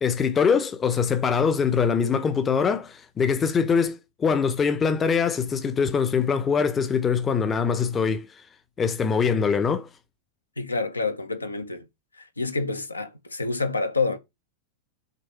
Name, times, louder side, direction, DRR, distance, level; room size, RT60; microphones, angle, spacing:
voice 1, 0.0-8.3 8.8-9.9, left 6 dB, 20° left, 0.7 m, -23 dB
voice 2, 10.6-11.8 12.2-14.2, left 3 dB, 80° left, 0.9 m, -28 dB
6.8 x 3.5 x 4.7 m
figure-of-eight pair, 90°, 0 cm